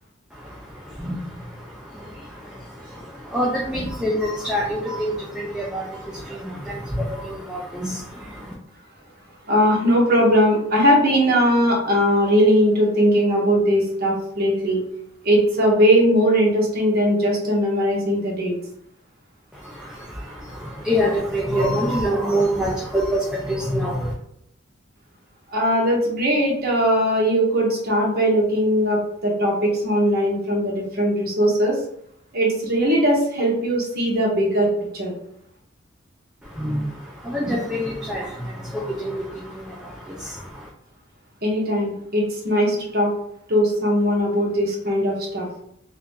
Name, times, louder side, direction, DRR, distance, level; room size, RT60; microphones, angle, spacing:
voice 1, 0.3-8.5 19.5-24.1 36.4-40.7, equal, 5° right, -4 dB, 0.5 m, -27 dB
voice 2, 9.5-14.8 15.2-18.6 25.5-31.8 32.3-35.1 41.4-43.1 43.5-45.5, equal, 50° right, -2 dB, 1.0 m, -19 dB
2.8 x 2.6 x 3.6 m, 0.72 s
head